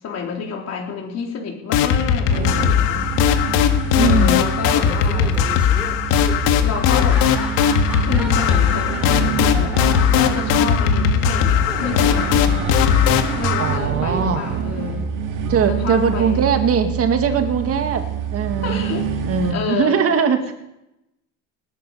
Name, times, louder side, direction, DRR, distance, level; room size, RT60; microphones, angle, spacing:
voice 1, 0.0-3.1 3.9-5.4 6.6-7.2 8.0-9.8 10.1-12.6 13.4-15.1 15.7-16.4 18.6-19.1 19.5-20.0, left 6 dB, 45° left, 1 dB, 4.1 m, -29 dB
sound 1, 1.7-13.8, left 9 dB, 80° left, 1.7 m, -18 dB
sound 2, 2.3-19.5, right 7 dB, 60° right, 2.4 m, -27 dB
voice 2, 4.0-4.4 13.6-14.5 15.5-18.9 19.2-20.5, right 6 dB, 40° right, 7 dB, 2.0 m, -20 dB
Laughter, 4.6-15.0, equal, 5° right, 4.3 m, -36 dB
19.0 x 9.5 x 5.6 m, 0.88 s
cardioid pair, 120°, 35 cm